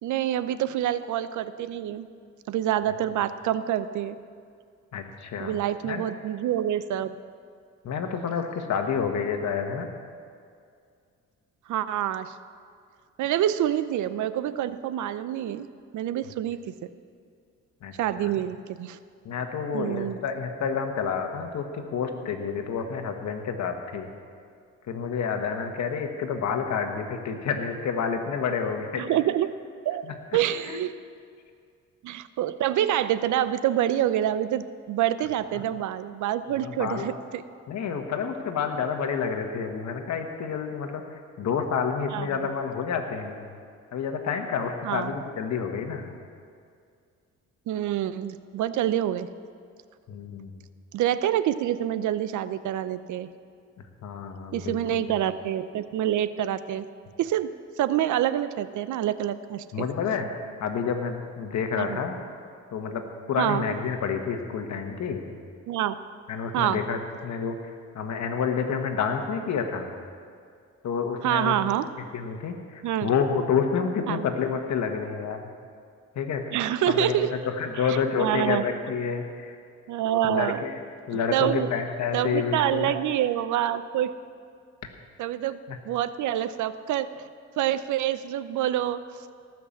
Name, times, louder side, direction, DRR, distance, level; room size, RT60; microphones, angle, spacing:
voice 1, 0.0-2.1 2.5-4.2 5.4-7.1 11.7-12.3 13.2-15.7 15.9-16.6 18.0-19.0 19.7-20.2 29.0-29.5 29.9-30.0 30.3-30.9 32.0-37.4 42.1-42.4 44.8-45.2 47.7-49.3 50.9-53.3 54.5-56.9 57.2-59.9 61.7-62.0 63.4-63.6 65.7-66.0 66.5-66.8 71.2-71.9 72.8-73.1 74.1-74.3 76.5-77.3 77.9-78.6 79.9-80.6 81.3-81.7 82.1-84.1 85.2-85.6 85.9-87.1 87.6-89.0, right 11 dB, 75° right, 14 dB, 0.6 m, -26 dB
voice 2, 4.9-5.5 5.8-6.1 7.8-9.9 16.2-16.3 17.8-18.4 19.2-24.1 24.9-29.0 30.0-30.1 30.7-30.8 35.5-35.6 36.6-37.1 37.7-41.0 41.4-43.4 43.9-46.1 50.1-50.5 54.0-55.1 59.7-60.3 60.6-62.2 62.7-65.3 66.3-67.6 67.9-69.9 70.8-71.5 72.1-75.5 76.1-76.4 76.9-79.2 80.2-80.8 81.1-82.9 85.7-85.8, left 6 dB, 65° left, 5 dB, 1.5 m, -29 dB
18.0 x 6.1 x 7.3 m, 2.2 s
cardioid pair, 90°, 30 cm